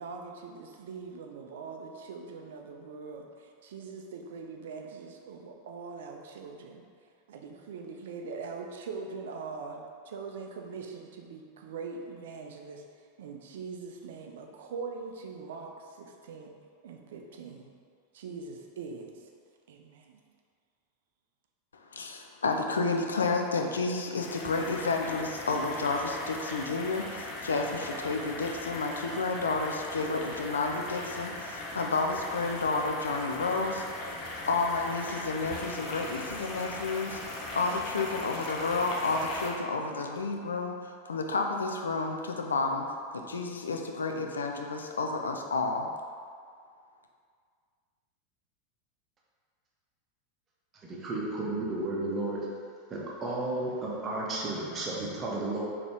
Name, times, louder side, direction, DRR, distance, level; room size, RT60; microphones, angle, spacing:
voice 1, 0.0-6.8 7.3-12.8 13.2-16.5 16.8-17.7 18.1-19.2 19.7-20.2, right 4 dB, 65° right, 2 dB, 0.4 m, -42 dB
voice 2, 21.7-33.8 34.5-37.2 37.5-42.9 43.1-45.9, left 3 dB, 75° left, 3 dB, 0.3 m, -31 dB
sound 1, 24.2-39.5, left 2 dB, 40° left, 0.7 m, -39 dB
voice 3, 50.7-52.5 52.9-55.7, right 2 dB, 30° right, -4 dB, 0.9 m, -33 dB
4.1 x 2.8 x 3.4 m, 2.1 s
figure-of-eight pair, 85°, 0 cm